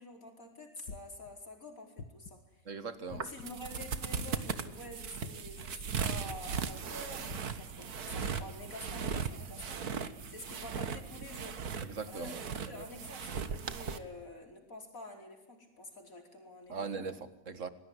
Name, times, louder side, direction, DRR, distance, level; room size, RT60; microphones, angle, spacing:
voice 1, 0.0-2.6 3.1-11.6 12.1-17.2, left 1 dB, 50° left, 5.1 m, -48 dB
sound 1, 0.9-1.3 2.0-2.4 3.1-3.6 4.2-4.5 5.2-5.6 6.3-6.6 7.3-7.6, left 5 dB, 80° left, 2.1 m, -47 dB
voice 2, 2.7-3.3 11.8-12.4 12.7-12.8 16.7-17.7, right 5 dB, 50° right, 2.0 m, -40 dB
sound 2, 3.1-14.0, right 6 dB, 65° right, 1.9 m, -38 dB
28.5 x 20.0 x 9.9 m
omnidirectional pair, 1.8 m